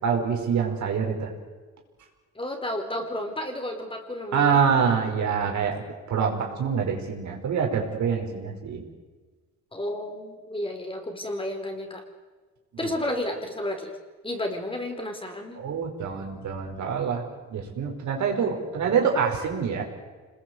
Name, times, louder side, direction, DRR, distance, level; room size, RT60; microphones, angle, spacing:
voice 1, 0.0-1.3 4.3-5.8 6.1-8.8 12.8-12.9 15.6-17.2 17.5-19.8, right 6 dB, 70° right, 2 dB, 5.3 m, -25 dB
voice 2, 2.3-4.6 9.7-12.0 12.8-14.0 14.2-15.6, left 1 dB, 15° left, 4 dB, 4.7 m, -32 dB
27.0 x 20.5 x 8.1 m, 1.4 s
cardioid pair, 90°, 30 cm